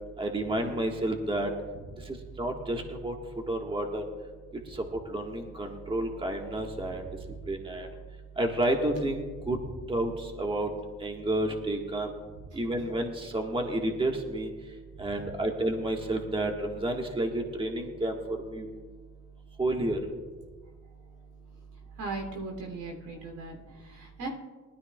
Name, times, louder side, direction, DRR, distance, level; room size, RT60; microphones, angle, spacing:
voice 1, 0.2-1.5 2.4-3.1 3.5-4.0 5.1-7.0 7.5-7.9 8.4-9.6 9.9-10.1 10.4-10.7 11.0-12.1 12.5-14.5 15.0-18.2 18.4-18.7 19.6-20.0, right 1 dB, 15° right, 2 dB, 1.6 m, -30 dB
voice 2, 22.0-23.6 23.8-24.3, right 3 dB, 85° right, 1 dB, 3.1 m, -38 dB
20.0 x 13.0 x 2.4 m, 1.4 s
cardioid pair, 90°, 30 cm